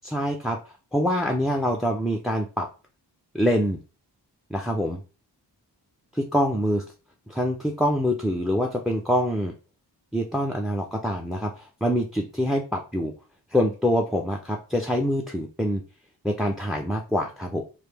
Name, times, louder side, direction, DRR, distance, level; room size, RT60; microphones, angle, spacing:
voice 1, 0.0-0.6 0.9-2.7 3.3-3.8 4.5-5.0 6.1-6.8 7.3-9.5 10.1-13.1 13.5-15.8 16.2-17.6, equal, ahead, 2 dB, 0.4 m, -25 dB
3.2 x 2.2 x 3.3 m, 0.33 s
cardioid pair, 50°, 44 cm